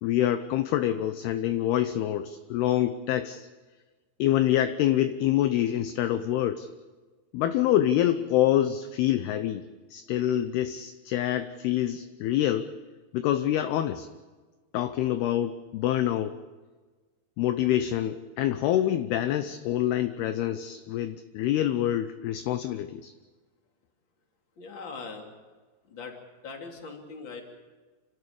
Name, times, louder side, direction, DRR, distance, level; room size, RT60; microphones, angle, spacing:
voice 1, 0.0-3.5 4.2-6.7 7.3-9.6 9.9-12.7 13.1-14.1 14.7-16.4 17.4-23.1, left 12 dB, 75° left, 10 dB, 2.5 m, -26 dB
voice 2, 24.6-25.2 25.9-26.1 26.4-27.4, left 4 dB, 30° left, 2 dB, 3.0 m, -40 dB
29.0 x 13.0 x 8.7 m, 1.3 s
omnidirectional pair, 5.1 m